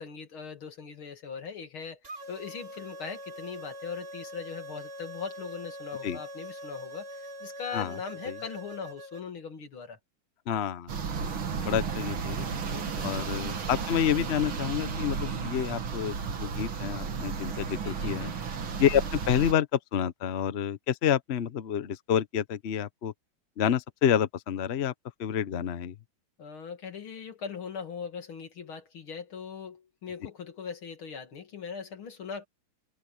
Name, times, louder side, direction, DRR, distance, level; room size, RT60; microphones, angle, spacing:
voice 1, 0.0-2.0 2.3-10.0 12.6-13.5 17.8-18.1 26.4-32.5, left 6 dB, 80° left, 3.3 m, -40 dB
sound 1, 2.0-9.2, equal, 25° right, 3.3 m, -43 dB
voice 2, 10.5-11.4 11.6-12.5 13.0-18.3 18.8-23.1 23.6-24.9 25.2-26.0, left 9 dB, 50° left, 0.8 m, -28 dB
sound 2, 10.9-19.5, right 5 dB, 75° right, 2.7 m, -33 dB
omnidirectional pair, 2.3 m